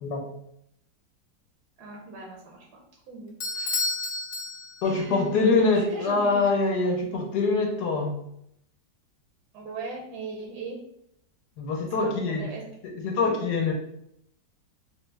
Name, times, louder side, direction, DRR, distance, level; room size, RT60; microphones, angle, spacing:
voice 1, 1.8-3.8 4.8-6.4 9.5-10.8 12.0-12.6, right 3 dB, 70° right, -2 dB, 1.1 m, -39 dB
Bell / Doorbell, 3.4-5.1, left 2 dB, 90° left, 0.6 m, -31 dB
voice 2, 4.8-8.2 11.6-12.5 12.8-13.7, left 3 dB, 70° left, 1 dB, 1.1 m, -24 dB
3.6 x 2.1 x 3.2 m, 0.73 s
omnidirectional pair, 2.0 m